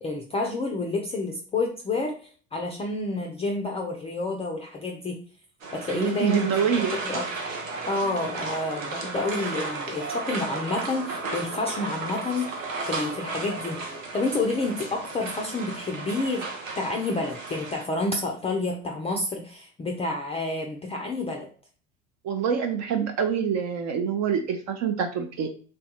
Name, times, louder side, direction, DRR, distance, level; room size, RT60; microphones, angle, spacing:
voice 1, 0.0-5.2 5.7-6.5 6.9-7.2 7.9-16.4 16.8-21.5, left 2 dB, 15° left, 1 dB, 0.4 m, -29 dB
sound 1, 5.6-17.9, right 3 dB, 90° right, 0.7 m, -34 dB
voice 2, 5.9-6.9 22.2-25.5, right 7 dB, 45° right, 5 dB, 0.5 m, -26 dB
3.2 x 2.2 x 2.9 m, 0.42 s
hypercardioid pair, 70°, 38 cm